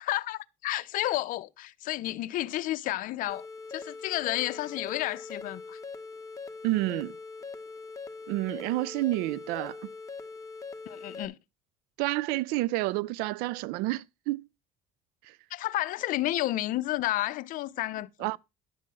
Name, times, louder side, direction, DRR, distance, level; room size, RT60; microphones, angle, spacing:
voice 1, 0.0-3.4 3.7-5.8 10.9-11.4 15.5-18.3, left 15 dB, 60° left, 0.6 m, -31 dB
sound 1, 3.3-11.3, left 4 dB, 20° left, 1.3 m, -42 dB
voice 2, 6.6-7.1 8.3-9.8 12.0-14.4 18.2-18.4, right 19 dB, 85° right, 0.4 m, -29 dB
11.0 x 3.7 x 7.5 m
cardioid pair, 115°, 15 cm